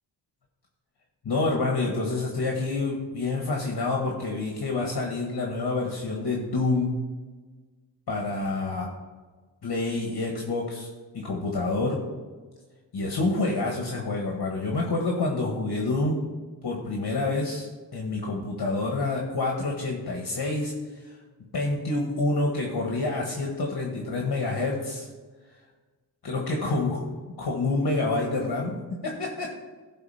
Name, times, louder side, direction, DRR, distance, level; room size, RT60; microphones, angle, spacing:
voice 1, 1.2-7.0 8.1-8.9 9.6-10.9 11.1-12.0 12.9-16.1 16.6-17.7 17.9-21.2 21.5-25.1 26.2-27.0 27.4-29.5, left 3 dB, 60° left, 0 dB, 1.5 m, -27 dB
11.5 x 4.2 x 5.6 m, 1.3 s
cardioid pair, 60°, 43 cm